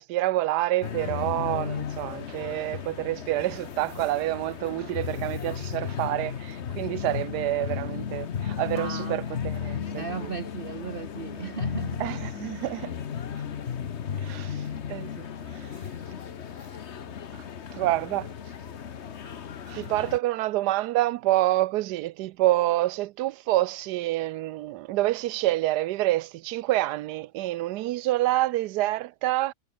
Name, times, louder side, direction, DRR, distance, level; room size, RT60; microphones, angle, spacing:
voice 1, 0.0-10.3 12.0-12.9 14.2-15.7 17.7-18.3 19.7-29.5, right 16 dB, 85° right, 1.2 m, -27 dB
sound 1, 0.8-20.2, left 8 dB, 50° left, 1.2 m, -35 dB
voice 2, 8.7-9.2 10.0-12.1, right 6 dB, 45° right, 0.8 m, -36 dB
omnidirectional pair, 1.7 m